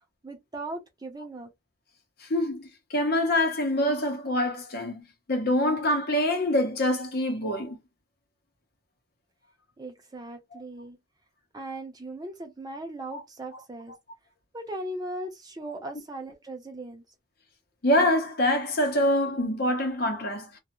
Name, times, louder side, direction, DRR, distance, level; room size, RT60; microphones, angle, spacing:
voice 1, 0.2-1.5 9.8-11.0 11.5-14.0 14.5-17.0, right 1 dB, 20° right, 0.6 m, -38 dB
voice 2, 2.3-2.7 2.9-7.8 13.1-13.2 17.8-20.5, left 1 dB, 50° left, 0.8 m, -25 dB
2.3 x 2.0 x 2.9 m
head